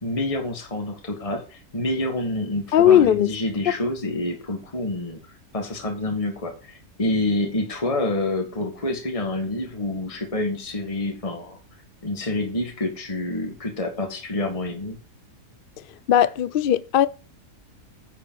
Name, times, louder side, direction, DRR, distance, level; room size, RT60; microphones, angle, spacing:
voice 1, 0.0-5.2 5.5-11.6 12.0-15.0, left 2 dB, 20° left, 1.9 m, -27 dB
voice 2, 2.7-3.3 3.7-3.8 16.1-17.1, left 10 dB, 65° left, 0.5 m, -17 dB
9.6 x 5.1 x 7.5 m
omnidirectional pair, 1.6 m